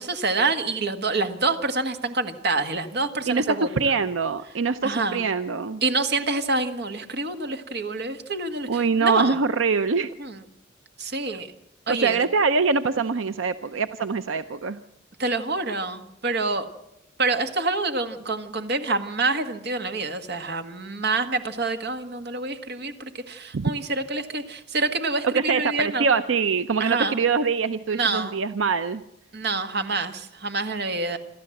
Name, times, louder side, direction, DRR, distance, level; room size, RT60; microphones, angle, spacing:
voice 1, 0.0-3.9 4.8-5.2 5.8-9.4 10.2-10.4 11.0-11.5 11.9-12.2 15.2-16.7 17.2-26.1 26.8-27.2 27.9-28.3 29.3-31.2, right 3 dB, 55° right, 7 dB, 1.6 m, -27 dB
voice 2, 3.3-5.8 8.7-10.1 11.9-14.8 23.5-23.7 25.3-29.0, right 5 dB, 80° right, 11 dB, 0.6 m, -24 dB
26.5 x 13.0 x 7.8 m, 0.84 s
head